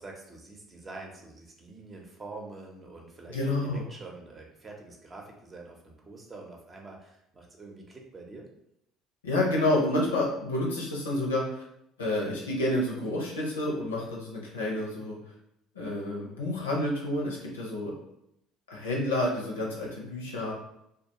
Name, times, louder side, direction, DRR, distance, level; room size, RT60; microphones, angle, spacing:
voice 1, 0.0-3.4 3.6-8.5, right 3 dB, 30° right, 0 dB, 0.7 m, -46 dB
voice 2, 3.3-3.8 9.2-11.6 12.0-15.2 15.7-17.9 18.7-20.5, left 1 dB, 85° left, -2 dB, 0.6 m, -29 dB
2.3 x 2.2 x 2.9 m, 0.79 s
figure-of-eight pair, 60°, 0 cm